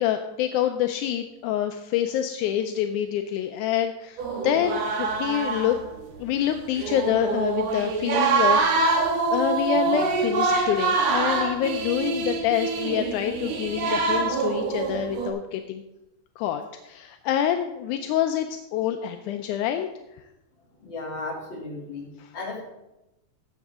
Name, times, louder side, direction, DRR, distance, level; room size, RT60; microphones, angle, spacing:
voice 1, 0.0-5.8 6.2-15.8 16.4-19.9 22.2-22.3, left 10 dB, 80° left, 6 dB, 2.0 m, -26 dB
sound 1, 4.2-5.9 6.1-6.2 6.7-15.3, right 4 dB, 65° right, 2.2 m, -25 dB
voice 2, 20.8-22.1 22.3-22.6, left 3 dB, 40° left, -3 dB, 3.3 m, -34 dB
15.0 x 7.9 x 3.6 m, 0.94 s
omnidirectional pair, 3.6 m